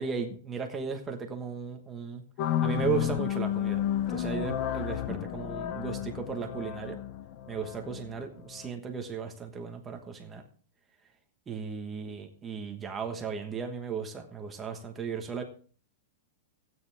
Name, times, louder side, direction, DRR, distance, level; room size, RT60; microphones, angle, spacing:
voice 1, 0.0-7.0 7.5-10.4 11.5-15.4, right 6 dB, 10° right, 4 dB, 1.3 m, -36 dB
sound 1, 2.4-8.7, left 10 dB, 30° left, 0.6 m, -32 dB
16.5 x 9.3 x 3.5 m, 0.42 s
supercardioid pair, 180°, 0 cm